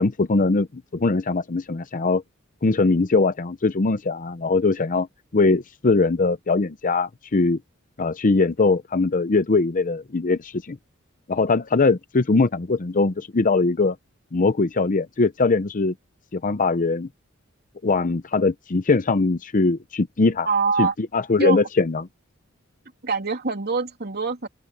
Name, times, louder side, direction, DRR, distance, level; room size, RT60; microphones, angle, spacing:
voice 1, 0.0-2.2 2.6-5.1 5.3-7.6 8.0-10.8 11.3-14.0 14.3-15.9 16.3-17.1 17.8-20.5 20.8-20.9 21.1-22.1, left 3 dB, 40° left, 0.7 m, -21 dB
voice 2, 20.5-20.9 21.4-21.7 23.0-24.5, right 4 dB, 50° right, 3.0 m, -24 dB
open air
head